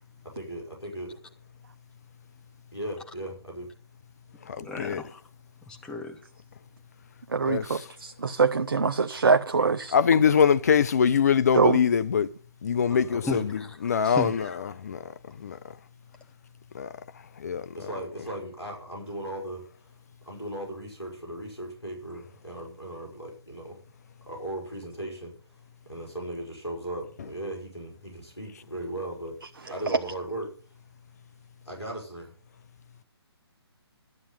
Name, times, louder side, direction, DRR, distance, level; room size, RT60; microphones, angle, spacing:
voice 1, 0.3-1.2 2.7-3.7 12.9-13.5 17.8-19.7 20.2-23.8 24.3-25.3 25.9-29.3 29.7-30.5 31.6-32.3, right 1 dB, 85° left, 5.1 m, -37 dB
voice 2, 4.5-5.2 5.7-6.2 13.3-13.8 14.0-14.8, left 2 dB, 5° left, 1.2 m, -35 dB
voice 3, 7.3-9.9 11.5-11.8, right 5 dB, 55° right, 0.7 m, -23 dB
voice 4, 9.9-12.3 12.6-13.2 13.8-14.3 14.9-15.0 15.4-15.6 16.8-16.9 17.4-17.6, left 7 dB, 40° left, 0.5 m, -22 dB
12.0 x 8.6 x 5.7 m
figure-of-eight pair, 135°, 14 cm